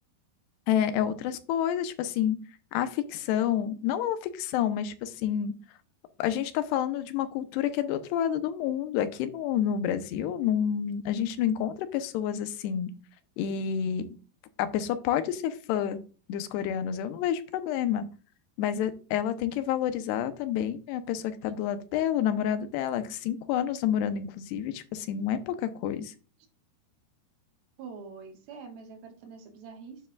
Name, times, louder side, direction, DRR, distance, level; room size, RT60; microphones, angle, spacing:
voice 1, 0.7-2.4 2.7-5.5 6.2-12.9 13.4-14.1 14.6-16.0 16.3-18.1 18.6-26.1, left 10 dB, 85° left, 10 dB, 2.9 m, -29 dB
voice 2, 27.8-30.0, right 5 dB, 70° right, 4 dB, 3.1 m, -45 dB
9.9 x 9.5 x 2.4 m, 0.35 s
omnidirectional pair, 4.7 m